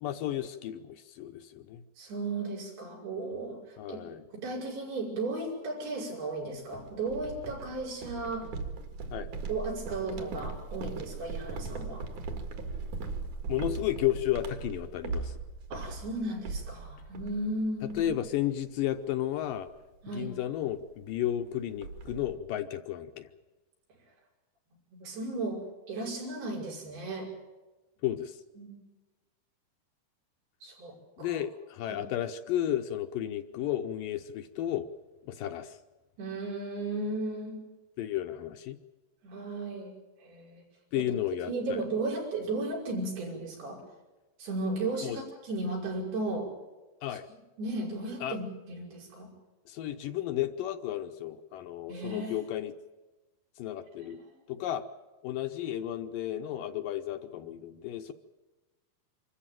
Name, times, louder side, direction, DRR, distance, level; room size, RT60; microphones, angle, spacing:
voice 1, 0.0-1.8 3.8-4.3 9.1-9.3 13.5-15.3 17.9-19.7 20.1-23.3 28.0-28.4 31.2-34.9 35.3-35.8 38.0-38.8 40.9-41.8 45.0-45.2 47.0-47.3 48.2-48.4 49.7-52.7 53.6-54.2 54.5-54.8 55.2-58.1, left 12 dB, 75° left, 7 dB, 2.2 m, -33 dB
voice 2, 2.0-4.0 4.3-8.5 9.5-12.1 15.7-18.0 20.0-20.3 24.9-27.3 28.6-28.8 30.6-31.4 31.9-32.0 36.2-37.6 39.2-39.9 40.2-40.6 40.9-41.1 41.5-43.8 44.4-46.5 47.1-47.2 47.6-49.3 51.9-52.4 54.0-54.3, right 2 dB, 85° right, -2 dB, 7.3 m, -35 dB
sound 1, 6.7-17.6 17.9-18.4 18.7-19.0 19.4-19.6 20.7-20.8 21.0-21.1 21.4-22.3, right 4 dB, 55° right, 3.1 m, -39 dB
25.5 x 14.0 x 9.1 m, 1.2 s
omnidirectional pair, 4.4 m